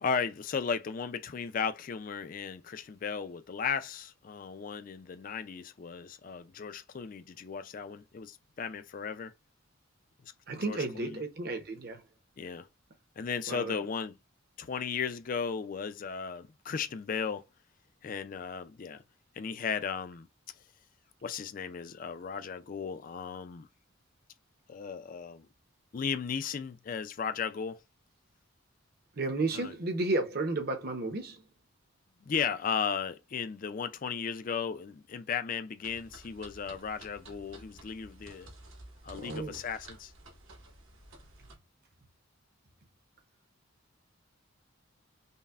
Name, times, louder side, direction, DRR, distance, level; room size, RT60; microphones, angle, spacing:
voice 1, 0.0-9.3 10.2-10.3 10.6-11.2 12.4-12.7 13.2-14.2 14.6-17.4 18.0-19.0 19.3-20.3 21.2-23.7 24.7-25.5 25.9-27.8 29.5-29.7 32.2-38.5 39.0-40.1, left 6 dB, 40° left, 0.3 m, -35 dB
voice 2, 10.5-12.0 13.5-13.8 29.2-31.4 39.2-39.6, right 2 dB, 45° right, 0.7 m, -32 dB
sound 1, 35.8-41.5, right 1 dB, 70° right, 1.1 m, -52 dB
5.4 x 2.1 x 2.3 m
head